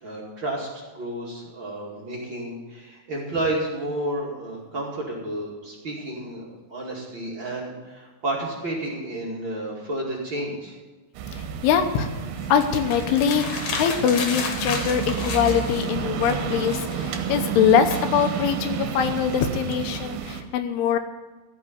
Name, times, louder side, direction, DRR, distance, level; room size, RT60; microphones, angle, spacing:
voice 1, 0.0-10.7, right 1 dB, 35° right, -4 dB, 2.4 m, -31 dB
sound 1, 11.1-20.4, right 7 dB, 75° right, 2.9 m, -31 dB
voice 2, 11.3-12.1 12.5-21.0, left 7 dB, 85° left, 7 dB, 3.0 m, -23 dB
sound 2, 12.4-16.0 16.2-18.5, left 4 dB, 65° left, 3.0 m, -33 dB
15.0 x 5.6 x 9.4 m, 1.3 s
omnidirectional pair, 4.6 m